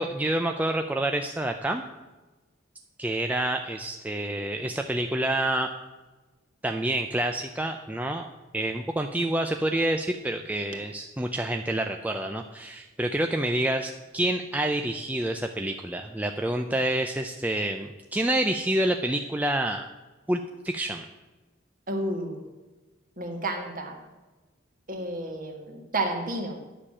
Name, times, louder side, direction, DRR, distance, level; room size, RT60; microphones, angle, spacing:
voice 1, 0.0-1.8 3.0-5.7 6.6-8.3 8.5-19.9 20.3-21.0, right 1 dB, 10° right, 4 dB, 0.5 m, -28 dB
voice 2, 21.9-22.4 23.2-24.0 24.9-26.6, right 1 dB, 45° right, 3 dB, 1.8 m, -31 dB
10.0 x 6.6 x 8.5 m, 1.2 s
head